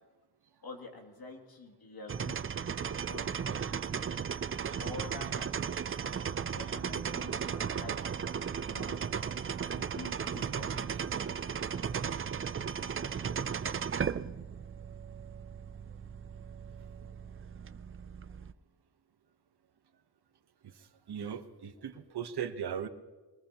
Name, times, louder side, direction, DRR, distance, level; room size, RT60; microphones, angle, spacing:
voice 1, 0.6-2.8 3.0-4.0 4.8-5.5 6.0-6.1 6.5-8.0 8.7-9.0 9.7-11.2 11.7-11.9, left 3 dB, 60° left, 2 dB, 2.6 m, -47 dB
sound 1, 2.1-18.5, right 7 dB, 35° right, 0.4 m, -36 dB
voice 2, 21.1-22.9, right 8 dB, 70° right, 9 dB, 1.1 m, -37 dB
22.5 x 20.0 x 3.0 m, 1.3 s
wide cardioid pair, 170°, 41 cm